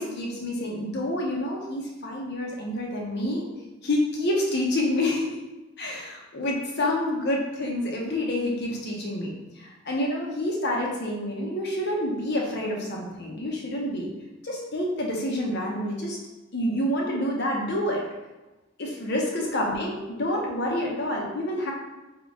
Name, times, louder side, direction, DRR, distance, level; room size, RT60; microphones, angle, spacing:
voice 1, 0.0-3.5 3.8-5.4 5.8-9.3 9.6-14.1 14.4-16.2 16.5-18.0 18.8-21.7, left 1 dB, 55° left, -1 dB, 0.8 m, -28 dB
3.7 x 3.0 x 3.6 m, 1.1 s
head